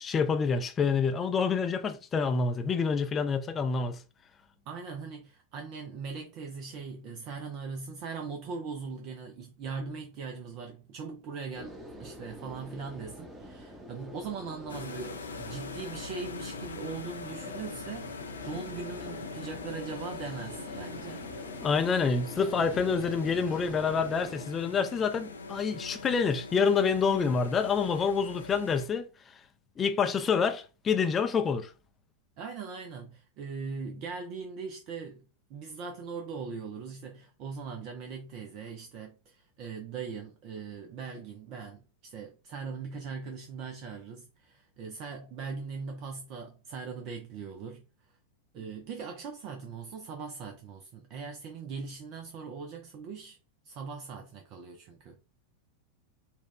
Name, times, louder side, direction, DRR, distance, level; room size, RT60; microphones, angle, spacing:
voice 1, 0.0-4.0 21.6-29.1 29.8-31.7, left 5 dB, 20° left, 0.5 m, -27 dB
voice 2, 4.7-21.3 27.2-27.4 32.4-47.9 48.5-53.4 53.6-55.2, right 5 dB, 40° right, 0.6 m, -40 dB
sound 1, 11.5-24.5, equal, 10° right, 1.0 m, -47 dB
sound 2, 14.7-28.9, left 4 dB, 70° left, 0.5 m, -42 dB
4.2 x 2.3 x 3.2 m
figure-of-eight pair, 90°, 0 cm